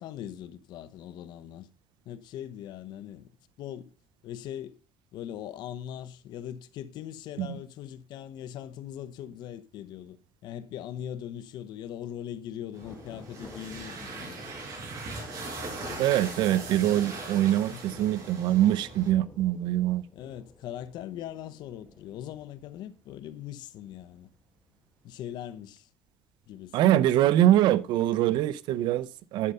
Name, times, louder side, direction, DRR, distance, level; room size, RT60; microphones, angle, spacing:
voice 1, 0.0-1.7 2.0-3.3 3.6-3.9 4.2-4.8 5.1-10.2 10.4-14.4 17.7-18.0 20.1-24.3 25.0-25.9 26.5-26.8, left 10 dB, 65° left, 0.9 m, -40 dB
sound 1, 12.7-19.1, right 3 dB, 50° right, 6.4 m, -40 dB
Thunder, 12.8-24.8 25.1-25.2, left 3 dB, 15° left, 1.5 m, -51 dB
voice 2, 16.0-20.0 26.7-29.5, right 13 dB, 70° right, 0.7 m, -24 dB
11.0 x 6.8 x 5.5 m
cardioid pair, 140°, 8 cm